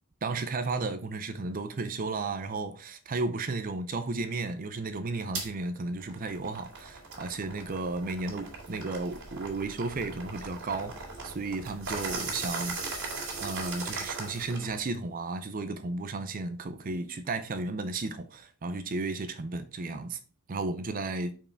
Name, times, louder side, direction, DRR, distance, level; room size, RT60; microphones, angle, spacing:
voice 1, 0.2-13.0 13.4-20.2 20.5-21.3, right 3 dB, 40° right, 0.5 m, -34 dB
sound 1, 5.3-5.5 6.0-14.8, right 3 dB, 60° right, 2.6 m, -38 dB
5.6 x 4.6 x 4.6 m
head